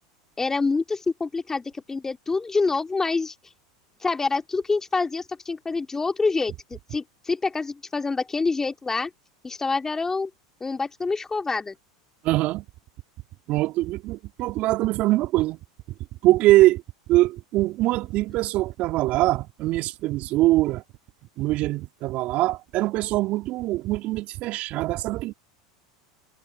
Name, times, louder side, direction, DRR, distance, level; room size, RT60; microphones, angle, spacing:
voice 1, 0.4-3.3 4.0-9.1 9.4-10.3 10.6-11.7, left 4 dB, 15° left, 2.8 m, -26 dB
voice 2, 12.2-12.6 13.5-15.6 16.2-16.8 17.1-20.8 21.4-25.3, right 17 dB, 50° right, 3.1 m, -23 dB
hypercardioid pair, 85°, 3 cm